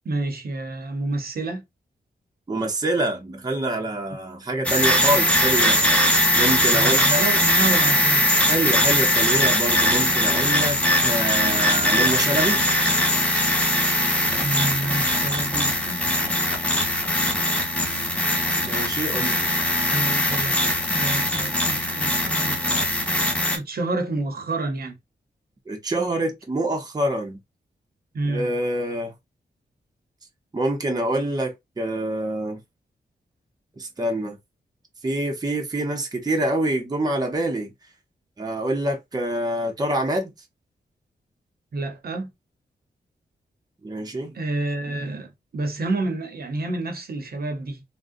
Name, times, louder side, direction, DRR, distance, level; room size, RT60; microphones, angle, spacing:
voice 1, 0.0-1.6 6.7-8.3 14.4-16.0 19.9-20.6 20.9-22.6 23.5-25.0 28.1-28.6 41.7-42.3 44.3-47.8, right 2 dB, 60° right, 0.8 m, -29 dB
voice 2, 2.5-5.8 6.4-7.2 8.5-12.6 18.6-19.4 25.7-27.4 28.3-29.1 30.5-32.6 33.8-34.4 35.0-37.7 38.4-40.3 43.8-44.4, right 1 dB, 20° right, 0.7 m, -26 dB
sound 1, 4.7-23.6, left 1 dB, 5° left, 0.8 m, -21 dB
3.6 x 2.1 x 2.5 m
wide cardioid pair, 145°, 17 cm